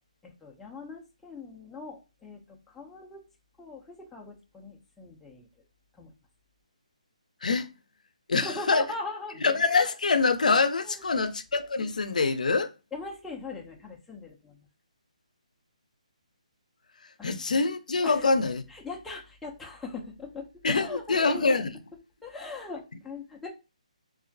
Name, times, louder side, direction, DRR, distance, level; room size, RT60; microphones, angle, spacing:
voice 1, 0.2-2.4 2.7-3.2 3.6-5.5 6.0-6.1 8.3-9.4 10.8-11.3 12.9-14.6 17.2-17.3 18.0-18.3 18.7-21.6 22.2-23.5, left 3 dB, 5° left, 0.4 m, -40 dB
voice 2, 7.4-7.7 8.3-8.8 9.4-12.7 17.2-18.6 20.6-21.7, left 4 dB, 80° left, 0.4 m, -25 dB
2.3 x 2.1 x 2.6 m
hypercardioid pair, 160°, 4 cm